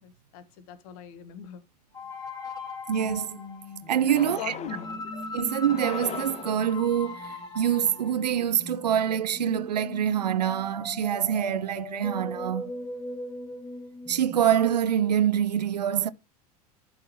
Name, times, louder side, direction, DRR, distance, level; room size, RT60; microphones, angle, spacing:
voice 1, 0.0-1.6 4.1-5.1, left 8 dB, 60° left, 1.3 m, -41 dB
sound 1, 1.9-14.7, left 2 dB, 15° left, 2.8 m, -39 dB
voice 2, 2.9-3.4 3.9-4.5 5.3-12.7 14.1-16.1, right 9 dB, 85° right, 0.5 m, -25 dB
sound 2, 4.1-5.0 5.6-6.8, left 8 dB, 35° left, 1.0 m, -39 dB
11.5 x 4.5 x 2.9 m
hypercardioid pair, 80°, 21 cm